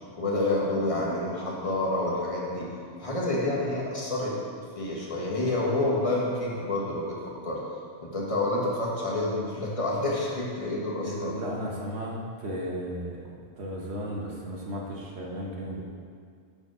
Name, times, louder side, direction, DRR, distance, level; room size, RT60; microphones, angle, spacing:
voice 1, 0.1-2.7 3.0-4.3 4.7-7.2 7.4-7.6 8.0-11.3, left 2 dB, 30° left, -5 dB, 1.5 m, -28 dB
voice 2, 11.0-13.2 13.6-15.8, equal, 70° right, -2 dB, 1.5 m, -34 dB
6.7 x 5.2 x 6.2 m, 2.2 s
omnidirectional pair, 1.1 m